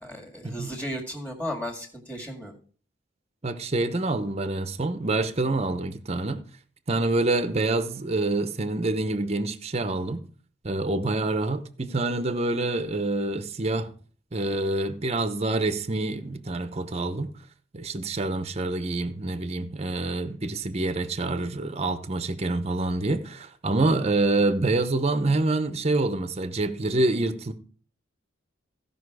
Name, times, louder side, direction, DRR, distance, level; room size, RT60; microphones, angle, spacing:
voice 1, 0.0-2.5, equal, 10° left, 1.9 m, -35 dB
voice 2, 3.4-6.4 6.9-10.2 10.6-13.9 14.3-17.3 17.7-27.5, right 2 dB, 35° right, 0.8 m, -26 dB
15.5 x 5.4 x 4.8 m
head